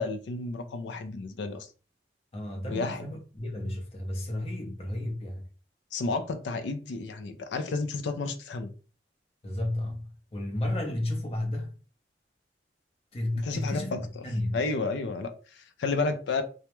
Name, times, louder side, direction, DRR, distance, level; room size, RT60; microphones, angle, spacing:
voice 1, 0.0-1.7 2.7-3.0 5.9-8.7 13.4-14.2 14.5-16.4, left 3 dB, 85° left, 0.4 m, -31 dB
voice 2, 2.3-5.4 9.4-10.0 10.3-11.7 13.1-14.6, left 1 dB, 35° left, 0.6 m, -32 dB
2.2 x 2.0 x 2.9 m
head